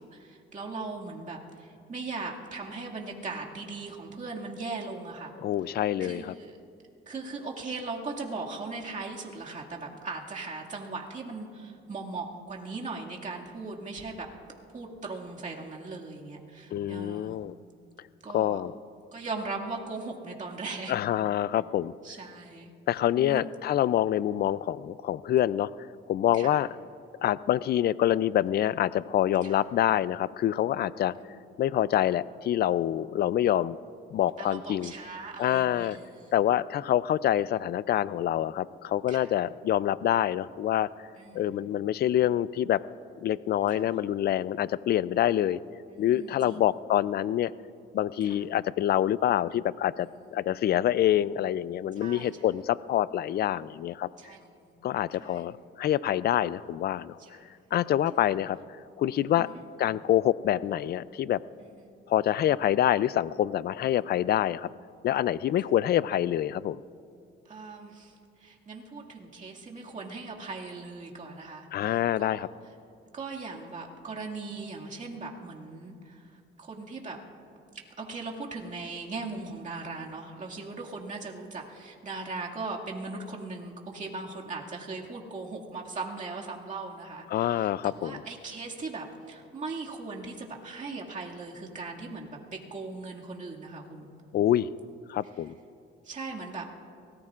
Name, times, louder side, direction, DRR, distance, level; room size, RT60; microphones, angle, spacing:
voice 1, 0.0-5.3 6.0-6.6 7.1-14.3 14.7-17.4 18.2-18.6 19.1-21.0 22.0-22.7 23.2-23.5 26.3-26.6 29.4-29.6 31.2-31.6 34.4-36.3 39.1-39.4 41.2-41.7 43.7-43.8 45.9-46.6 48.2-48.4 50.0-50.2 52.0-52.3 54.2-54.8 55.2-55.4 57.2-57.7 58.1-58.3 59.4-59.6 61.6-61.9 67.5-72.5 73.1-77.2 78.0-94.1 96.0-96.7, right 3 dB, 40° right, -2 dB, 2.1 m, -39 dB
voice 2, 5.4-6.3 16.7-17.6 18.3-18.7 20.9-21.9 22.9-25.7 26.1-26.7 27.2-31.1 31.6-33.8 34.1-34.9 35.4-36.0 36.3-40.9 41.3-42.8 43.2-45.6 46.0-47.5 47.9-54.1 54.8-57.2 57.7-58.6 59.0-59.5 59.8-61.4 62.1-64.7 65.0-66.8 71.7-72.5 87.3-88.2 94.3-94.7 95.1-95.5, left 11 dB, 55° left, 18 dB, 0.4 m, -26 dB
23.5 x 18.5 x 2.5 m, 2.3 s
cardioid pair, 90°, 20 cm